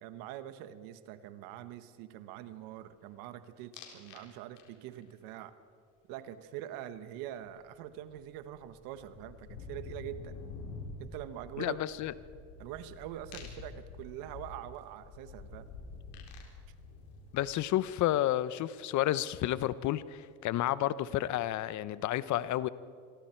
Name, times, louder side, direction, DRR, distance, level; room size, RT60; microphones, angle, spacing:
voice 1, 0.0-5.5 6.1-10.4 11.0-11.8 12.6-15.7, right 12 dB, 75° right, 12 dB, 1.3 m, -44 dB
sound 1, 3.7-4.3 4.6-5.0 7.5-7.6 7.8-17.9, left 4 dB, 80° left, 3.8 m, -48 dB
voice 2, 11.6-12.1 17.3-22.7, left 13 dB, 55° left, 17 dB, 0.8 m, -31 dB
25.5 x 22.0 x 4.5 m, 2.2 s
supercardioid pair, 95°, 35 cm